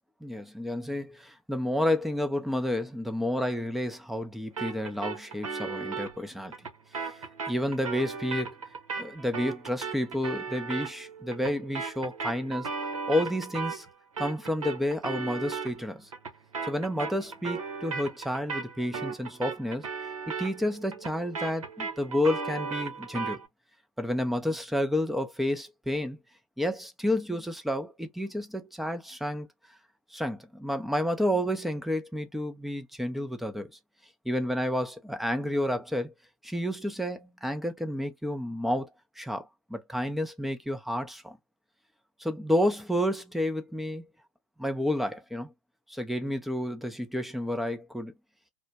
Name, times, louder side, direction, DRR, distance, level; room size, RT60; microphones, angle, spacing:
voice 1, 0.2-6.5 6.9-8.5 9.0-13.9 14.2-16.1 16.6-19.9 20.3-23.4 24.0-26.2 26.6-29.5 30.1-33.7 34.2-36.1 36.4-38.9 39.2-41.4 42.2-44.0 44.6-45.5 45.9-48.1, left 1 dB, ahead, 0.5 m, -30 dB
sound 1, 4.6-13.9 14.2-23.5, right 5 dB, 80° right, 0.9 m, -36 dB
2.2 x 2.1 x 2.7 m
figure-of-eight pair, 90°, 17 cm